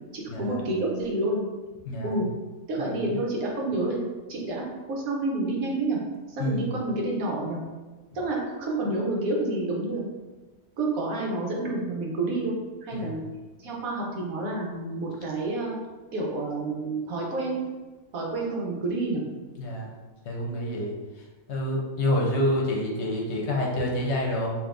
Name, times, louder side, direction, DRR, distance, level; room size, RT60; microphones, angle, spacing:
voice 1, 0.1-1.4 2.0-2.3 2.7-4.0 4.3-6.0 6.3-7.6 8.1-10.0 10.8-12.5 12.8-13.2 13.6-15.8 16.1-17.6 18.1-19.2, right 2 dB, 85° right, -2 dB, 1.3 m, -29 dB
voice 2, 1.9-2.2 2.8-3.0 6.4-6.7 12.9-13.1 19.6-19.9 20.3-20.9 21.5-24.5, left 1 dB, 60° left, -2 dB, 0.9 m, -27 dB
5.0 x 2.7 x 2.5 m, 1.2 s
omnidirectional pair, 1.4 m